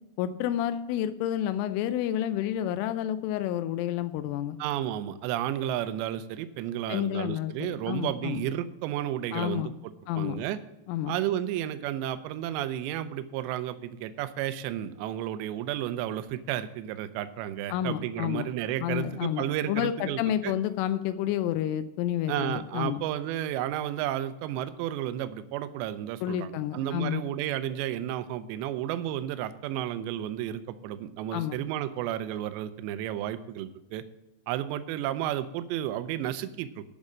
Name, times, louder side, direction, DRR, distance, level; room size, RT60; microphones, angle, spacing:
voice 1, 0.2-4.6 6.9-8.4 9.3-9.7 10.1-10.4 10.9-11.2 17.7-18.5 18.8-23.0 26.2-27.2 31.3-31.6, left 11 dB, 90° left, 10 dB, 3.2 m, -30 dB
voice 2, 4.6-10.6 11.1-20.6 22.3-34.0 34.5-36.8, right 12 dB, 80° right, 12 dB, 2.6 m, -32 dB
10.5 x 6.4 x 7.4 m, 0.96 s
omnidirectional pair, 5.6 m